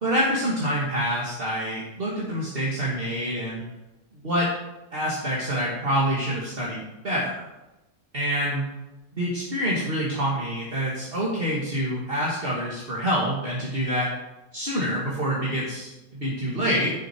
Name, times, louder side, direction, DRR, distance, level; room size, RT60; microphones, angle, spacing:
voice 1, 0.0-3.6 4.2-4.5 4.9-7.4 8.1-8.6 9.1-14.1 14.5-16.9, equal, 40° right, -6 dB, 2.4 m, -26 dB
15.0 x 6.9 x 4.6 m, 0.99 s
omnidirectional pair, 1.5 m